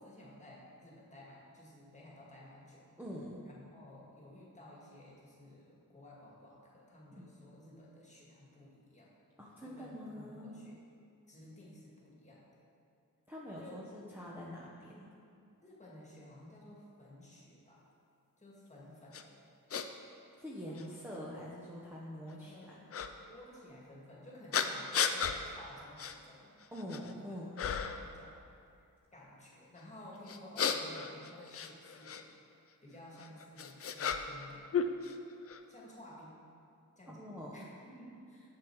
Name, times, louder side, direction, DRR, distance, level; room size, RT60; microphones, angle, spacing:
voice 1, 0.0-2.9 3.4-9.1 9.6-10.8 11.3-12.6 13.6-13.9 15.6-17.8 18.4-19.4 20.6-21.2 22.4-22.7 23.3-26.5 27.3-28.4 28.8-32.2 32.8-34.7 35.7-36.4 37.0-38.5, left 1 dB, 20° left, -5 dB, 2.0 m, -54 dB
voice 2, 3.0-3.5 7.1-7.3 9.4-10.6 13.3-15.2 20.4-22.9 26.7-27.6 37.1-37.7, equal, 5° right, -6 dB, 0.9 m, -45 dB
sound 1, 19.1-19.2 19.7-19.9 20.7-20.8 22.9-23.1 24.5-25.4 26.0-26.2 26.6-27.1 27.6-28.1 30.3-32.2 33.2-34.5 34.7-35.6, left 7 dB, 40° left, 0.5 m, -34 dB
6.8 x 6.6 x 4.6 m, 2.5 s
cardioid pair, 85°, 36 cm